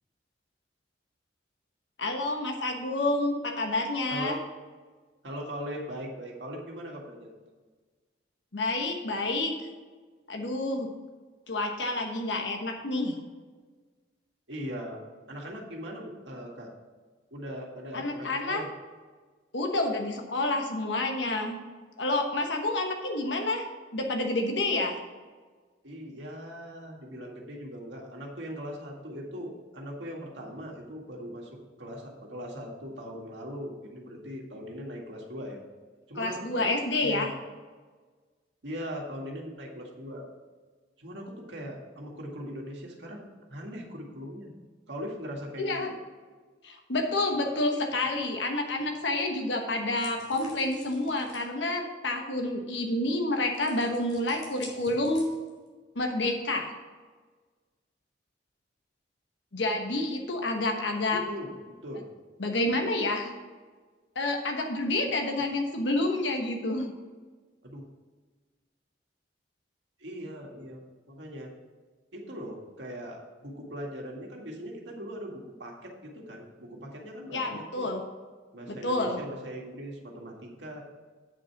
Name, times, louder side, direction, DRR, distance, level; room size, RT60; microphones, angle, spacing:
voice 1, 2.0-4.4 8.5-9.5 10.3-10.9 11.5-13.1 17.9-18.6 19.5-21.6 22.0-23.6 23.9-25.0 36.2-37.3 45.6-45.9 46.6-55.3 55.9-56.7 59.5-61.2 62.4-63.3 64.1-66.9 77.3-78.0 78.7-79.2, left 2 dB, 75° left, 3 dB, 1.2 m, -29 dB
voice 2, 4.1-4.4 5.2-7.3 14.5-15.0 15.3-16.7 17.3-18.7 25.8-31.5 31.8-35.6 36.1-36.7 37.0-37.3 38.6-40.3 41.0-44.5 44.9-46.0 61.1-62.1 67.6-67.9 70.0-71.5 72.1-77.9 78.5-80.8, equal, 75° right, -1 dB, 1.9 m, -40 dB
sound 1, 50.0-51.5 53.5-55.7, left 2 dB, 40° left, 3.0 m, -50 dB
8.8 x 5.2 x 5.9 m, 1.4 s
head